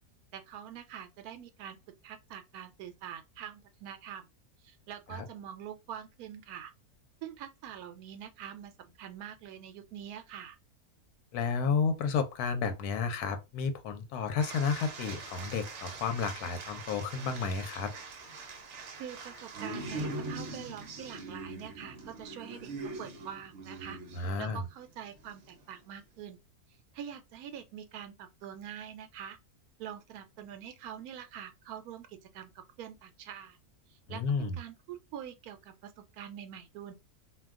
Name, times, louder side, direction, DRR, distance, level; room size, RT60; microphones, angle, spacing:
voice 1, 0.3-1.8 2.0-4.2 4.6-6.7 7.2-10.6 19.0-24.0 24.4-26.4 26.9-29.4 29.8-33.6 33.9-36.9, right 9 dB, 80° right, 1.1 m, -45 dB
voice 2, 11.3-17.9 24.2-24.6 34.1-34.6, left 5 dB, 85° left, 1.2 m, -31 dB
sound 1, 14.4-24.7 25.2-25.6, right 3 dB, 60° right, 1.0 m, -42 dB
2.6 x 2.2 x 3.5 m
omnidirectional pair, 1.6 m